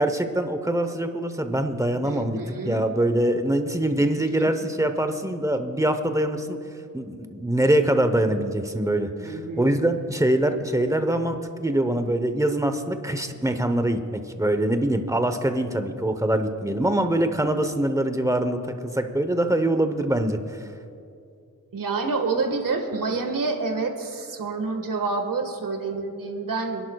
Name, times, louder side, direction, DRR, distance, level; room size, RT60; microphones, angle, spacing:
voice 1, 0.0-2.4 2.6-6.6 6.9-20.4, right 1 dB, 10° right, 7 dB, 0.9 m, -24 dB
voice 2, 2.0-2.8 4.0-4.5 9.2-9.9 21.7-26.9, right 4 dB, 75° right, 4 dB, 1.6 m, -28 dB
27.0 x 11.5 x 2.3 m, 2.6 s
wide cardioid pair, 75°, 34 cm